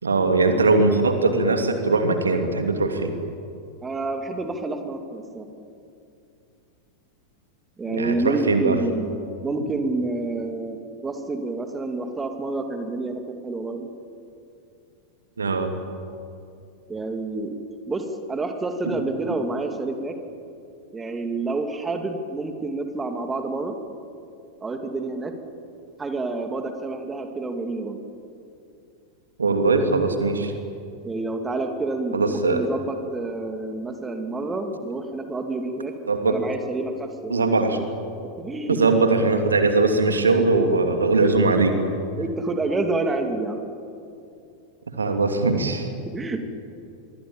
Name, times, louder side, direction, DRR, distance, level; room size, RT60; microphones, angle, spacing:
voice 1, 0.0-3.1 7.9-8.8 15.4-15.7 29.4-30.5 32.1-32.7 36.1-36.4 37.3-37.8 38.7-41.7 45.0-45.9, right 3 dB, 75° right, 6 dB, 2.7 m, -20 dB
voice 2, 3.8-5.5 7.8-9.1 9.4-13.9 16.9-17.5 17.9-20.1 20.9-23.7 24.6-25.3 26.0-28.0 31.0-35.9 36.3-37.4 38.4-38.8 42.2-43.6 46.1-46.4, right 3 dB, 15° right, 5 dB, 2.7 m, -28 dB
26.5 x 23.5 x 8.9 m, 2.5 s
figure-of-eight pair, 90°, 0 cm